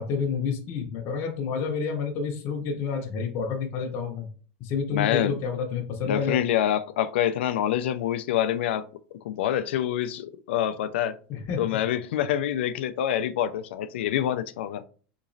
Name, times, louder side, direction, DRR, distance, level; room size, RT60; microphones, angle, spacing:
voice 1, 0.0-4.3 4.6-6.4 11.3-11.8, left 6 dB, 50° left, 0.7 m, -29 dB
voice 2, 4.9-5.3 6.0-8.8 9.2-11.2 11.6-14.8, left 11 dB, 85° left, 0.4 m, -26 dB
3.8 x 3.0 x 2.6 m
supercardioid pair, 125°, 6 cm